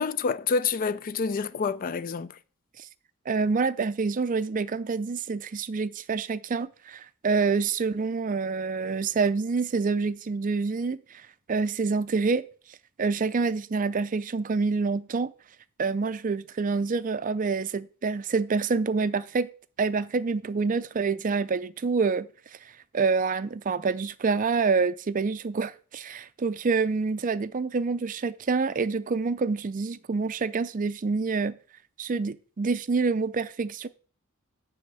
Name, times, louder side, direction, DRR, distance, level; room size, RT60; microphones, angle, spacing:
voice 1, 0.0-2.3, left 5 dB, 40° left, 0.4 m, -27 dB
voice 2, 3.3-11.0 11.5-12.5 13.0-15.3 15.8-19.5 19.8-22.3 22.9-31.6 32.0-33.9, right 4 dB, 40° right, 0.4 m, -27 dB
9.8 x 3.5 x 6.8 m
head